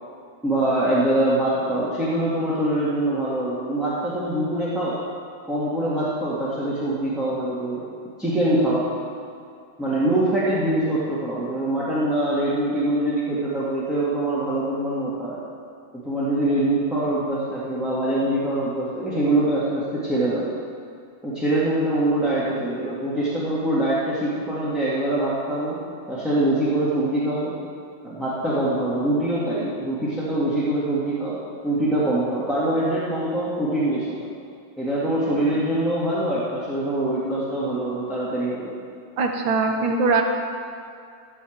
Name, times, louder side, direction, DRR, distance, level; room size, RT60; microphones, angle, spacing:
voice 1, 0.4-5.0 5.5-7.8 8.2-8.9 9.8-15.4 16.0-20.5 21.2-25.8 26.1-27.5 28.0-31.4 31.6-34.3 34.8-38.7, right 1 dB, ahead, -10 dB, 2.0 m, -24 dB
voice 2, 39.2-40.2, right 4 dB, 80° right, 2 dB, 1.9 m, -21 dB
15.0 x 5.7 x 8.0 m, 2.4 s
omnidirectional pair, 2.1 m